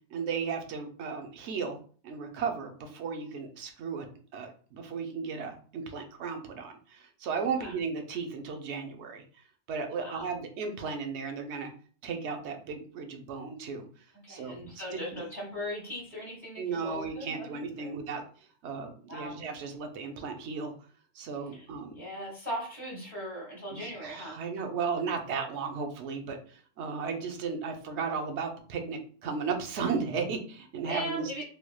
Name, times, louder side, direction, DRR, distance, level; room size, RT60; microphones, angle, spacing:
voice 1, 0.1-1.8 2.0-4.1 4.3-9.2 9.7-11.7 12.0-13.9 14.3-15.2 16.6-18.2 18.6-20.7 21.1-22.0 23.7-31.4, right 5 dB, 70° right, 5 dB, 0.9 m, -35 dB
voice 2, 9.9-10.3 14.1-17.9 19.1-19.4 21.5-21.6 21.9-24.4 30.8-31.4, equal, 10° right, -4 dB, 1.3 m, -39 dB
3.4 x 3.0 x 2.3 m, 0.43 s
omnidirectional pair, 1.3 m